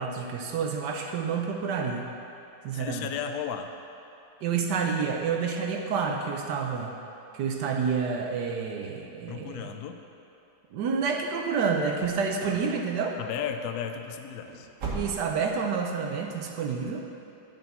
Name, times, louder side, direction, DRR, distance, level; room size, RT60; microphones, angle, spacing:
voice 1, 0.0-2.1 2.6-3.1 4.4-6.9 7.3-9.7 10.7-13.2 14.9-17.1, right 5 dB, 70° right, 2 dB, 1.1 m, -29 dB
voice 2, 2.7-3.7 9.3-10.0 13.2-14.7, left 8 dB, 80° left, 6 dB, 0.8 m, -34 dB
sound 1, 11.9-12.7 12.9-13.4 13.7-13.8 14.3-15.5 15.8-15.9 16.5-16.6, right 3 dB, 45° right, 1.4 m, -38 dB
10.0 x 6.8 x 4.2 m, 2.9 s
omnidirectional pair, 2.2 m